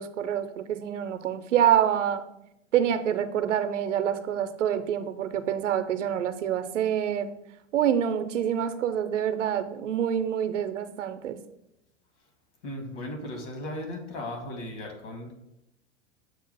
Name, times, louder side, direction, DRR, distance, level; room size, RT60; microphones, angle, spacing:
voice 1, 0.0-2.3 2.7-7.3 7.7-11.4, right 9 dB, 70° right, 10 dB, 0.6 m, -26 dB
voice 2, 12.6-15.3, left 1 dB, 65° left, 2 dB, 1.7 m, -36 dB
7.3 x 2.5 x 5.3 m, 0.85 s
figure-of-eight pair, 95°, 39 cm